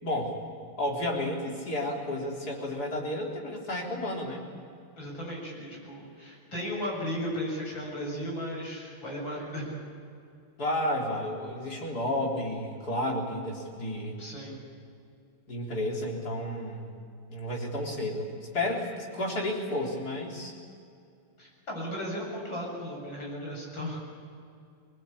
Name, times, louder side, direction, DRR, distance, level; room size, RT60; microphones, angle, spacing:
voice 1, 0.0-0.4 0.8-4.4 10.6-14.2 15.5-16.9 17.3-20.5, left 1 dB, 50° left, -1 dB, 4.3 m, -32 dB
voice 2, 5.0-9.7 14.2-14.6 21.4-24.0, equal, 70° left, -2 dB, 8.5 m, -35 dB
25.0 x 20.0 x 8.5 m, 2.4 s
omnidirectional pair, 2.2 m